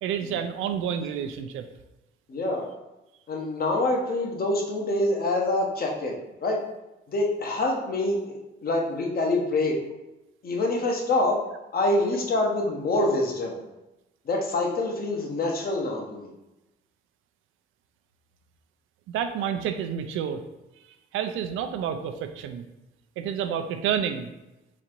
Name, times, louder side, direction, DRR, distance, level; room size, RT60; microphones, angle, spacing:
voice 1, 0.0-1.7 19.1-20.4 21.1-22.6 23.2-24.3, right 8 dB, 85° right, 8 dB, 0.5 m, -29 dB
voice 2, 2.3-2.6 3.3-6.6 7.1-9.8 10.4-11.4 11.7-13.6 14.2-16.3, left 2 dB, 50° left, 0 dB, 1.0 m, -26 dB
4.1 x 2.5 x 4.4 m, 0.97 s
cardioid pair, 90°, 20 cm